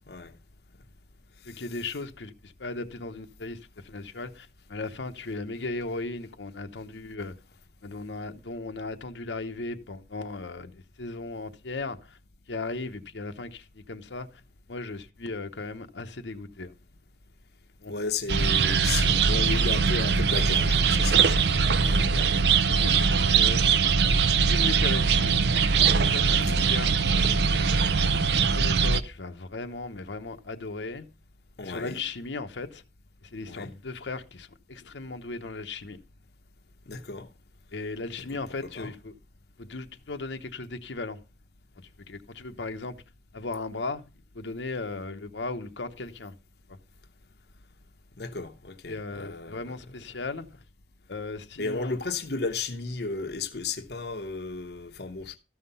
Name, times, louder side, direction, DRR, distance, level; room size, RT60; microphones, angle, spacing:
voice 1, 1.5-7.3 7.8-12.2 12.5-14.3 14.7-16.7 17.8-17.9 21.8-22.3 22.7-24.0 24.5-25.4 25.9-26.9 27.5-27.7 28.5-31.0 31.6-32.8 33.2-36.0 37.7-39.1 39.6-41.2 41.8-42.9 43.3-44.0 44.3-46.3 48.9-50.5 51.1-52.0, left 3 dB, 85° left, 0.9 m, -37 dB
voice 2, 17.9-21.5 21.7-22.4 31.6-32.0 33.5-33.7 36.9-37.3 38.8-38.9 48.2-49.6 51.6-55.4, left 4 dB, 65° left, 0.8 m, -34 dB
sound 1, 18.3-29.0, right 5 dB, 70° right, 0.6 m, -22 dB
13.5 x 5.8 x 5.5 m
head